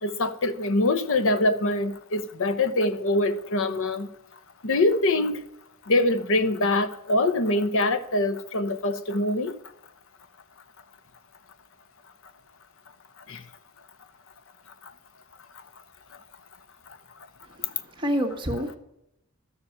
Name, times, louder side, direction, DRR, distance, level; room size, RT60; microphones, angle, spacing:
voice 1, 0.0-4.1 4.6-5.5 5.8-9.6 13.3-13.5 14.8-14.9 16.9-17.0, left 2 dB, 65° left, 1.0 m, -24 dB
voice 2, 17.5-18.8, equal, 25° right, 2.0 m, -29 dB
12.0 x 7.1 x 8.1 m
head